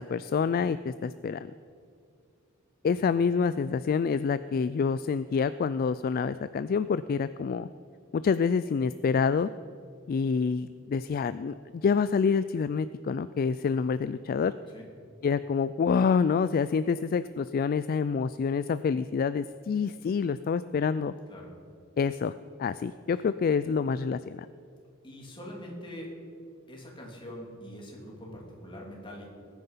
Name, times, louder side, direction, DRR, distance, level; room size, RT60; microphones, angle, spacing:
voice 1, 0.0-1.5 2.8-7.7 8.1-9.5 10.1-14.5 15.2-21.1 22.0-22.3 22.6-24.5, left 5 dB, 45° left, 14 dB, 0.3 m, -27 dB
voice 2, 25.0-26.1 26.7-29.3, equal, 25° left, -2 dB, 3.1 m, -43 dB
20.0 x 9.5 x 5.7 m, 2.3 s
head